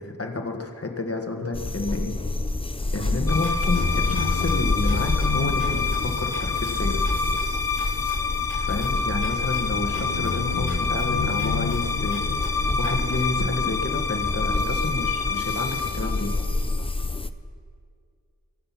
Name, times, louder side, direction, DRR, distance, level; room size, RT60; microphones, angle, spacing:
voice 1, 0.0-2.1 2.9-7.0 8.6-12.3 12.6-16.3, left 2 dB, 40° left, 3 dB, 1.6 m, -30 dB
sound 1, 1.5-17.3, left 2 dB, 15° left, 0.5 m, -28 dB
sound 2, 2.8-13.0, left 1 dB, 55° left, 3.9 m, -45 dB
sound 3, 3.3-16.9, left 5 dB, 75° left, 0.9 m, -27 dB
23.5 x 7.8 x 5.9 m, 2.2 s
wide cardioid pair, 55°, 35 cm